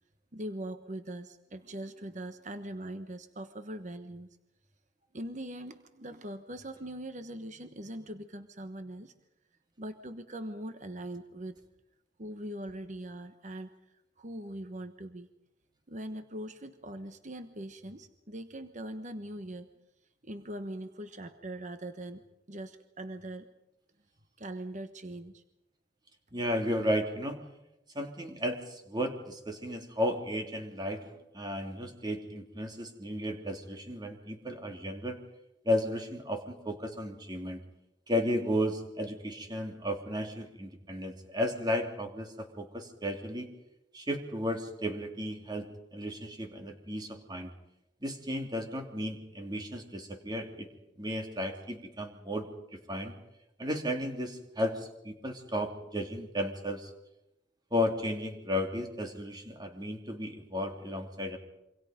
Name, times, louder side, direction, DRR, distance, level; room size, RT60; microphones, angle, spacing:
voice 1, 0.3-4.4 5.1-9.1 9.8-11.6 12.2-13.7 14.2-15.3 15.9-19.7 20.2-23.5 24.4-25.4, right 1 dB, 45° right, 9 dB, 1.3 m, -41 dB
voice 2, 26.3-27.4 27.9-35.2 35.6-37.6 38.1-43.5 43.9-47.5 48.0-50.7 51.0-53.1 53.6-56.9 57.7-61.4, left 1 dB, 25° right, 4 dB, 3.1 m, -34 dB
27.5 x 25.0 x 5.2 m, 0.88 s
head